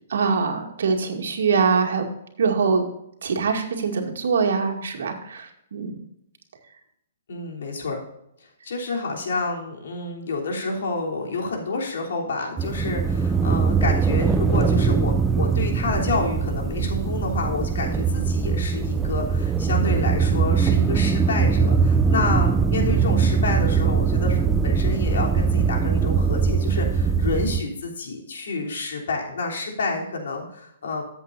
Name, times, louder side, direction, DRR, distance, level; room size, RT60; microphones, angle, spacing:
voice 1, 0.1-2.1 2.4-2.9 3.2-6.0, right 5 dB, 80° right, 2 dB, 2.2 m, -23 dB
voice 2, 7.3-8.0 8.6-31.0, left 3 dB, 75° left, 0 dB, 3.3 m, -29 dB
sound 1, 12.6-27.6, right 5 dB, 10° right, 0.4 m, -21 dB
13.5 x 8.2 x 2.6 m, 0.78 s
hypercardioid pair, 165°, 0 cm